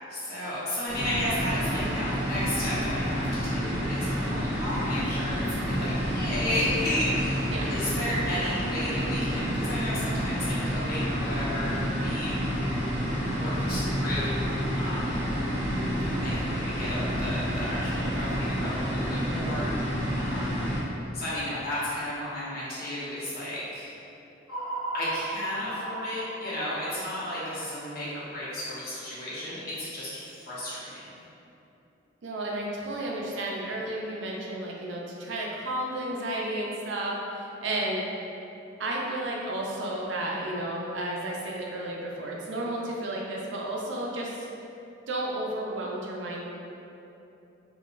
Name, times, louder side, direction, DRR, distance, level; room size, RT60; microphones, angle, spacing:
voice 1, 0.1-12.3 13.2-14.5 14.8-15.3 16.1-20.7 21.1-23.9 24.9-31.1, left 1 dB, 50° left, -9 dB, 0.9 m, -33 dB
sound 1, 0.9-20.8, equal, 5° left, 0.9 m, -29 dB
voice 2, 7.5-7.9 32.2-38.0 38.8-44.5 45.1-46.4, right 1 dB, 70° right, -2 dB, 0.5 m, -32 dB
sound 2, 24.5-28.7, right 2 dB, 85° left, 0.9 m, -37 dB
3.7 x 2.2 x 2.5 m, 2.9 s
head